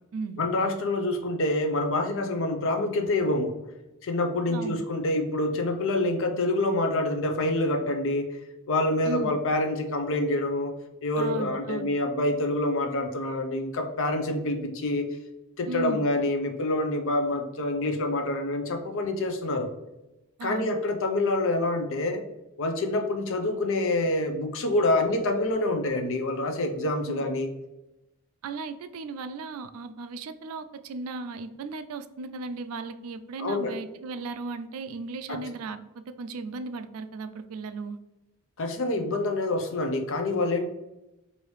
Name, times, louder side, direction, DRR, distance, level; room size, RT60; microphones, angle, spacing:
voice 1, 0.4-3.5 4.0-8.3 8.7-10.7 11.0-15.1 15.6-19.7 20.4-22.2 22.6-27.5 33.4-33.7 35.3-35.4 38.6-40.7, left 2 dB, 60° left, 5 dB, 0.6 m, -26 dB
voice 2, 4.5-4.8 9.0-9.4 11.2-11.9 15.7-16.1 20.4-20.7 27.1-27.2 28.4-35.8 36.1-38.0, right 3 dB, 70° right, 11 dB, 0.3 m, -36 dB
4.7 x 2.7 x 3.1 m, 0.95 s
head